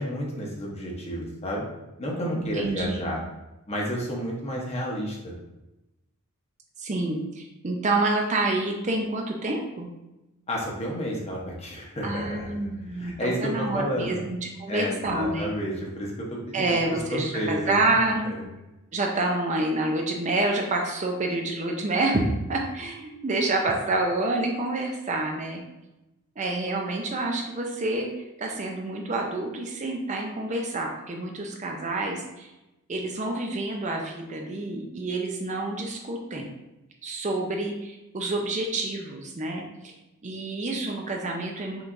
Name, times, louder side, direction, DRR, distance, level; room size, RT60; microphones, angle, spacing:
voice 1, 0.0-1.6 2.0-3.2 3.7-5.3 10.5-12.5 12.9-14.2 14.7-17.7 18.2-18.4, equal, 30° left, -2 dB, 0.9 m, -31 dB
voice 2, 2.6-3.0 6.8-9.9 12.0-15.5 16.5-18.3 18.9-25.6 26.4-28.1 28.4-32.5 32.9-36.5 37.0-39.9 40.2-41.8, right 2 dB, 30° right, 1 dB, 0.5 m, -28 dB
5.8 x 3.3 x 2.6 m, 0.98 s
head